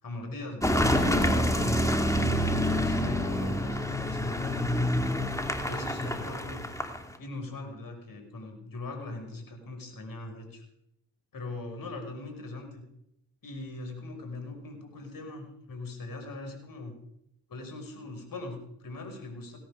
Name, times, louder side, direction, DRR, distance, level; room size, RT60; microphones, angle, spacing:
voice 1, 0.0-2.1 2.5-4.6 5.5-6.6 7.2-10.6 11.3-12.8 13.4-16.9 17.5-19.6, left 2 dB, 50° left, 4 dB, 5.9 m, -40 dB
Car passing by / Engine, 0.6-7.2, left 1 dB, 5° left, 2.8 m, -27 dB
18.0 x 10.5 x 6.8 m, 0.77 s
hypercardioid pair, 55°, 43 cm